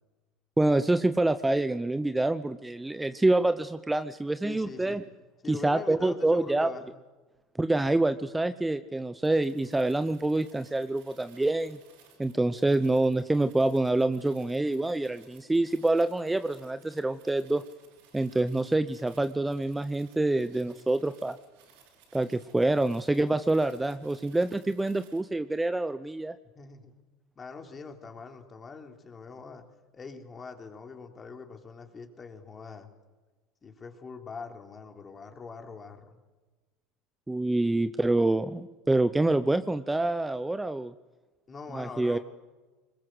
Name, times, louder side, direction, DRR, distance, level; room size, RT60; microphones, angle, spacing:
voice 1, 0.6-5.0 5.5-6.7 7.6-11.8 12.2-17.6 18.1-21.4 22.1-26.3 37.3-40.9 41.7-42.2, right 2 dB, 10° right, 12 dB, 0.8 m, -26 dB
voice 2, 4.4-5.0 5.4-6.9 24.3-24.4 26.5-26.9 27.3-29.6 29.9-32.9 33.6-36.2 41.5-42.2, left 4 dB, 25° left, 4 dB, 3.5 m, -43 dB
sound 1, 9.2-25.2, right 6 dB, 75° right, 8.0 m, -60 dB
22.0 x 20.5 x 8.0 m, 1.3 s
supercardioid pair, 100°, 0 cm